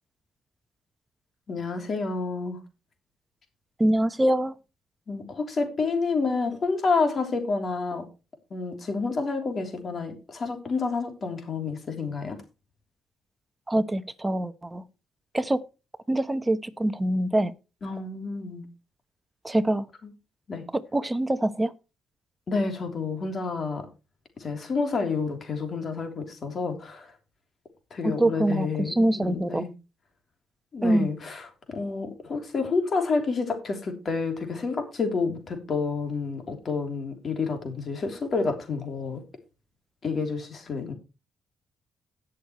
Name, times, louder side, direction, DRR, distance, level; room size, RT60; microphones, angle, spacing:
voice 1, 1.5-2.6 5.1-8.1 8.5-12.4 17.8-18.7 20.0-20.1 20.5-20.6 22.5-23.9 24.4-27.1 27.9-29.7 30.7-39.2 40.0-40.9, left 4 dB, 45° left, 3.2 m, -29 dB
voice 2, 3.8-4.5 13.7-14.8 15.3-15.6 16.1-17.5 19.4-19.8 20.9-21.7 28.2-28.7 29.0-29.6 30.8-31.1, right 1 dB, 15° right, 1.0 m, -24 dB
18.0 x 6.5 x 3.1 m
cardioid pair, 90°, 0 cm